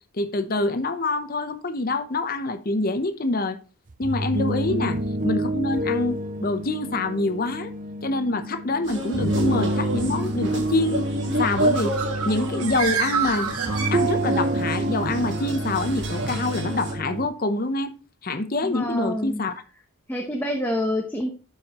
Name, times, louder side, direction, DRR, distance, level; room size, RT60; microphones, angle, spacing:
voice 1, 0.1-3.6 4.0-5.0 5.2-7.7 8.0-11.1 11.4-11.9 12.3-13.5 13.9-17.9 18.2-19.5, left 2 dB, 40° left, 0.7 m, -26 dB
sound 1, 3.9-17.3, right 1 dB, 35° right, 0.5 m, -28 dB
sound 2, 8.8-16.9, right 1 dB, 55° right, 1.6 m, -30 dB
Bird, 11.5-14.6, right 6 dB, 85° right, 1.6 m, -28 dB
voice 2, 18.6-19.4 20.1-21.3, left 1 dB, 10° left, 0.7 m, -27 dB
11.5 x 4.9 x 2.9 m
head